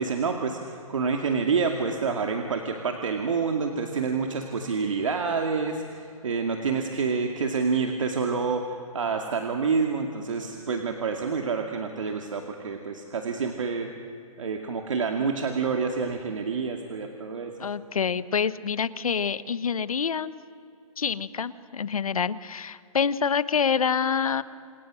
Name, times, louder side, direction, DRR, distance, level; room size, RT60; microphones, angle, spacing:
voice 1, 0.0-13.9 14.4-17.5, right 5 dB, 60° right, 3 dB, 2.4 m, -28 dB
voice 2, 17.6-20.3 21.0-24.4, left 6 dB, 70° left, 15 dB, 1.2 m, -26 dB
29.5 x 27.5 x 6.4 m, 2.5 s
hypercardioid pair, 175°, 19 cm